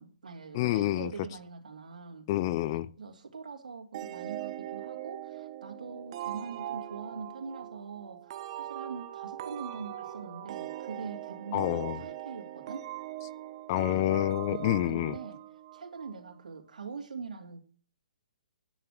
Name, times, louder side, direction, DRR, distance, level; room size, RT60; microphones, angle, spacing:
voice 1, 0.0-2.3 3.0-12.9 14.5-15.4 15.7-17.6, right 5 dB, 80° right, 2.8 m, -43 dB
voice 2, 0.5-1.1 2.3-2.9 11.5-12.0 13.7-15.2, left 14 dB, 30° left, 0.5 m, -28 dB
sound 1, 3.9-16.3, right 13 dB, 40° right, 1.0 m, -41 dB
10.0 x 7.5 x 6.4 m
hypercardioid pair, 155°, 4 cm